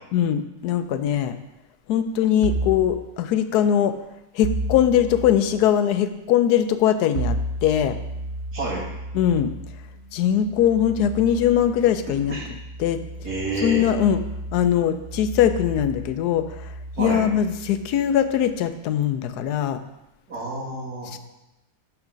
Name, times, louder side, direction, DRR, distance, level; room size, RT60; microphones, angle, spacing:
voice 1, 0.1-1.4 1.9-3.9 4.3-8.0 9.1-9.5 10.1-12.4 12.8-13.0 13.6-14.2 14.5-16.5 17.0-19.8 21.1-21.2, left 9 dB, 85° left, 10 dB, 1.1 m, -21 dB
sound 1, 2.4-2.9 4.4-5.4 7.1-18.5, right 2 dB, 55° right, 0.9 m, -33 dB
voice 2, 8.5-8.8 12.3-12.4 13.2-13.9 17.0-17.2 20.3-21.1, right 2 dB, 80° right, -6 dB, 2.9 m, -28 dB
6.5 x 6.0 x 5.0 m, 0.94 s
omnidirectional pair, 1.7 m